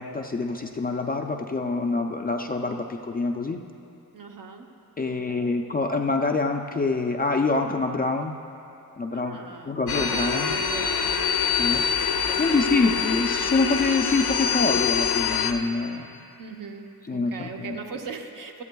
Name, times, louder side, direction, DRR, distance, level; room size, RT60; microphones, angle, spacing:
voice 1, 0.0-3.6 5.0-8.4 9.0-9.4 9.7-10.6 11.6-16.1 17.1-17.7, left 3 dB, 25° left, 3 dB, 0.3 m, -26 dB
voice 2, 4.1-4.7 5.1-5.6 9.1-11.8 12.1-12.7 16.4-18.6, right 5 dB, 60° right, 3 dB, 0.9 m, -40 dB
sound 1, 9.9-15.5, left 7 dB, 85° left, 0.8 m, -25 dB
16.5 x 14.0 x 2.3 m, 2.7 s
wide cardioid pair, 175°, 37 cm